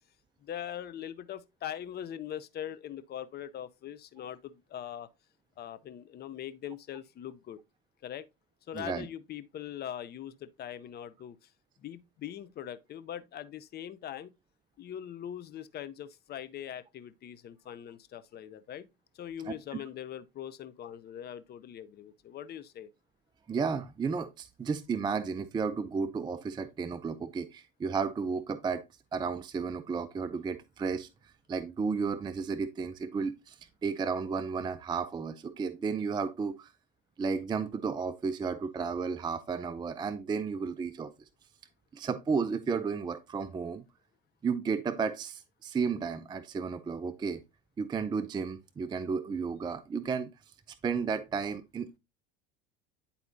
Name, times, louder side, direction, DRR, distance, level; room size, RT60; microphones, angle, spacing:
voice 1, 0.4-5.1 5.6-7.6 8.0-8.3 8.7-11.5 11.8-14.3 14.8-18.9 19.1-22.9, left 10 dB, 35° left, 0.6 m, -42 dB
voice 2, 8.7-9.1 19.5-19.6 23.5-28.8 29.1-36.7 37.2-41.1 41.9-43.8 44.4-47.4 47.8-50.3 50.7-52.0, right 5 dB, 15° right, 0.4 m, -33 dB
9.7 x 4.2 x 2.6 m
hypercardioid pair, 90°, 29 cm